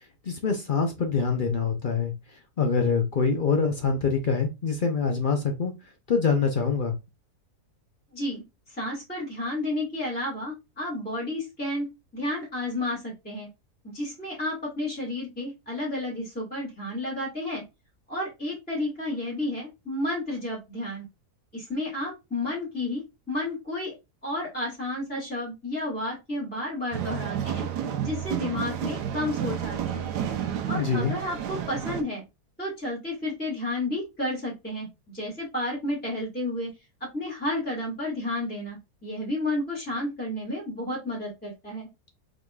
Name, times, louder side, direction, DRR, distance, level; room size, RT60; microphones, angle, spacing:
voice 1, 0.2-2.1 2.6-5.7 6.1-6.9 30.7-31.2, left 5 dB, 55° left, 0.5 m, -25 dB
voice 2, 8.1-11.9 12.1-13.5 13.9-17.6 18.1-21.0 21.5-23.0 23.3-23.9 24.2-27.7 28.0-30.1 30.7-32.2 32.6-36.7 37.1-41.9, left 1 dB, 5° left, 1.6 m, -31 dB
sound 1, 26.9-32.0, right 9 dB, 85° right, 1.2 m, -31 dB
5.0 x 3.8 x 2.3 m
omnidirectional pair, 1.7 m